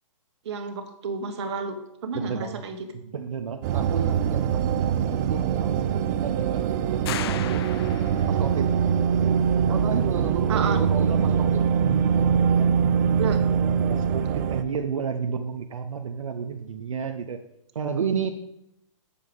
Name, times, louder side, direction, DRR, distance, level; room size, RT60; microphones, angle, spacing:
voice 1, 0.4-2.9 10.5-10.8 13.2-13.4, right 5 dB, 55° right, 6 dB, 1.7 m, -31 dB
voice 2, 2.1-2.6 2.9-5.8 6.2-7.6 8.3-8.7 9.7-11.7 12.1-12.7 13.1-17.4 17.7-18.3, right 6 dB, 85° right, 5 dB, 0.8 m, -32 dB
sound 1, 3.6-14.6, right 7 dB, 35° right, 0.7 m, -23 dB
sound 2, 7.1-8.5, left 11 dB, 50° left, 0.4 m, -35 dB
7.6 x 6.9 x 5.3 m, 0.83 s
hypercardioid pair, 140°, 17 cm